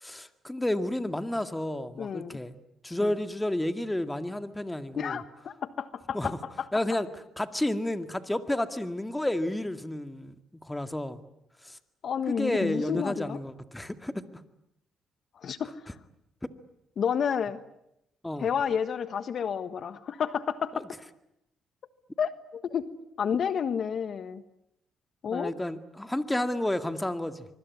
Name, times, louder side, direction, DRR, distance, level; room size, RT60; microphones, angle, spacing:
voice 1, 0.0-2.6 2.8-5.2 6.1-6.4 6.7-7.1 7.4-11.2 11.6-11.8 12.3-14.3 18.2-18.5 20.7-20.8 25.2-27.5, left 1 dB, 10° left, 10 dB, 2.1 m, -31 dB
voice 2, 2.0-2.4 3.0-3.2 5.0-6.7 12.0-13.4 15.3-15.9 17.0-17.6 18.4-20.9 22.2-22.9 23.2-24.4 25.2-25.5, left 7 dB, 55° left, 13 dB, 1.4 m, -30 dB
25.0 x 24.0 x 9.7 m, 0.82 s
cardioid pair, 90°, 0 cm